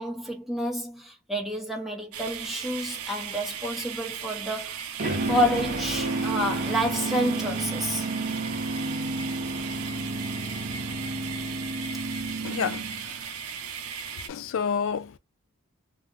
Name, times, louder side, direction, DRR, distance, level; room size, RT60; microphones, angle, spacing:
voice 1, 0.0-4.9 5.3-8.1, equal, ahead, 0.7 m, -29 dB
sound 1, 2.1-14.3, right 8 dB, 85° right, 0.5 m, -37 dB
sound 2, 5.0-13.2, right 2 dB, 40° right, 0.7 m, -31 dB
voice 2, 12.4-13.2 14.3-15.2, left 6 dB, 60° left, 0.4 m, -30 dB
2.3 x 2.0 x 3.6 m
head